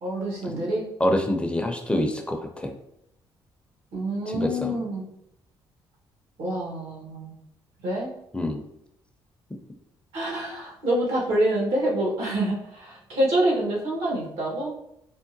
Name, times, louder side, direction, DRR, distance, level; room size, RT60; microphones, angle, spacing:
voice 1, 0.0-0.9 3.9-5.1 6.4-7.4 7.8-8.1 10.1-14.7, right 1 dB, 80° right, -3 dB, 1.2 m, -26 dB
voice 2, 1.0-2.7 4.4-4.7 8.3-8.6, left 1 dB, 10° left, 3 dB, 0.5 m, -26 dB
3.6 x 2.1 x 2.6 m, 0.77 s
supercardioid pair, 75°, 10 cm